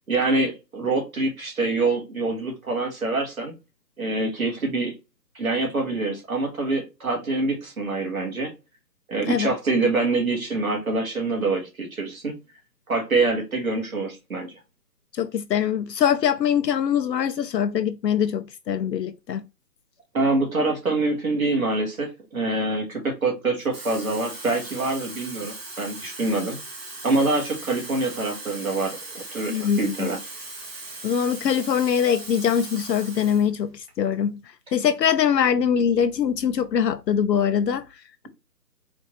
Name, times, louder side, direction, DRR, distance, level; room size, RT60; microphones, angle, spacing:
voice 1, 0.1-3.5 4.0-4.9 5.3-8.5 9.1-12.3 12.9-14.5 20.1-26.6 27.0-30.2, right 3 dB, 55° right, 1.6 m, -25 dB
voice 2, 15.1-19.4 29.5-30.1 31.0-34.4 34.7-37.9, left 8 dB, 75° left, 0.5 m, -23 dB
Water tap faucet / Fill (with liquid), 23.6-33.5 33.9-34.1, right 2 dB, 35° right, 1.2 m, -39 dB
4.3 x 2.5 x 3.0 m
figure-of-eight pair, 170°, 50 cm